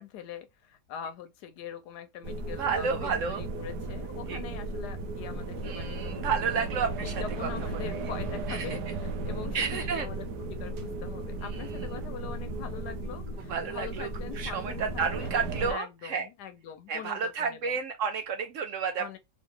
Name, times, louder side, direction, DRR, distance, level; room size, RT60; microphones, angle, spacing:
voice 1, 0.0-6.4 7.0-15.4 15.7-17.8 19.0-19.2, left 9 dB, 85° left, 1.3 m, -43 dB
sound 1, 2.2-15.7, right 3 dB, 90° right, 1.3 m, -35 dB
voice 2, 2.5-3.4 4.3-4.4 5.6-8.1 8.5-8.8 9.5-10.1 11.4-11.7 13.5-14.1 14.3-16.3 16.9-19.2, right 6 dB, 65° right, 0.8 m, -31 dB
Organ, 4.2-14.9, left 9 dB, 55° left, 1.0 m, -53 dB
3.3 x 3.1 x 3.6 m
omnidirectional pair, 1.7 m